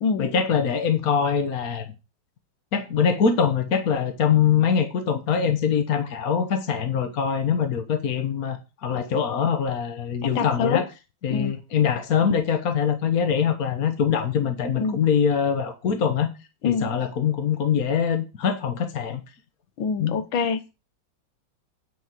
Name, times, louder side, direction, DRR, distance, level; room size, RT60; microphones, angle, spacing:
voice 1, 0.2-1.8 2.7-10.8 11.2-16.3 16.6-19.2 20.0-20.2, left 7 dB, 50° left, 7 dB, 1.5 m, -23 dB
voice 2, 10.2-10.8 11.3-11.5 14.8-15.0 16.6-16.9 19.8-20.7, left 5 dB, 80° left, 10 dB, 1.8 m, -25 dB
9.5 x 5.4 x 7.4 m, 0.29 s
omnidirectional pair, 2.1 m